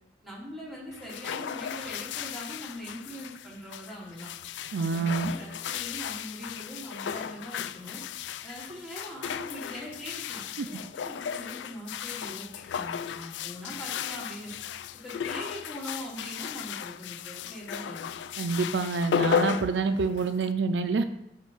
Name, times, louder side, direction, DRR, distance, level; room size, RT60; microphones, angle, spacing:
voice 1, 0.2-4.3 4.8-8.0 8.4-12.5 12.7-14.5 15.0-18.1, equal, ahead, -7 dB, 2.8 m, -42 dB
sound 1, 0.9-20.5, left 8 dB, 80° left, 0.3 m, -35 dB
voice 2, 4.7-5.3 10.6-10.8 18.4-21.0, right 4 dB, 75° right, 9 dB, 0.4 m, -27 dB
5.5 x 5.2 x 6.1 m, 0.82 s
head